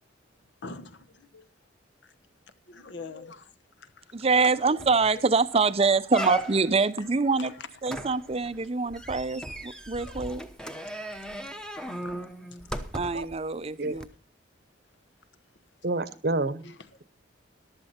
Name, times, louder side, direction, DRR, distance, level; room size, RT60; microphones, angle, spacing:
voice 1, 0.6-1.5 2.0-2.1 2.7-4.8 5.1-7.7 8.6-8.7 10.0-10.1 10.8-11.6 11.9-13.2 13.8-14.1 16.6-17.0, left 4 dB, 65° left, 1.0 m, -46 dB
voice 2, 4.1-7.5 7.8-10.4 12.9-14.0, right 4 dB, 30° right, 0.6 m, -25 dB
sound 1, 4.4-4.5 4.8-5.1 5.5-5.6 6.1-6.8 7.9-13.3 14.0-14.1, right 1 dB, 5° left, 0.9 m, -37 dB
voice 3, 15.8-16.7, right 2 dB, 55° right, 0.9 m, -28 dB
14.5 x 11.5 x 4.3 m
head